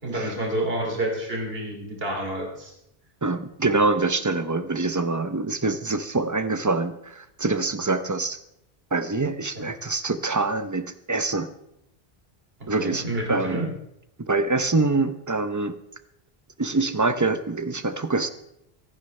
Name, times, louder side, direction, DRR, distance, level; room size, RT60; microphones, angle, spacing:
voice 1, 0.0-2.7 9.5-9.6 12.8-13.7, right 1 dB, 65° right, 0 dB, 3.0 m, -29 dB
voice 2, 3.2-8.4 8.9-11.5 12.7-13.8 14.2-15.8 16.6-18.3, right 3 dB, 20° right, 11 dB, 0.6 m, -25 dB
24.5 x 11.5 x 3.3 m, 0.79 s
omnidirectional pair, 1.1 m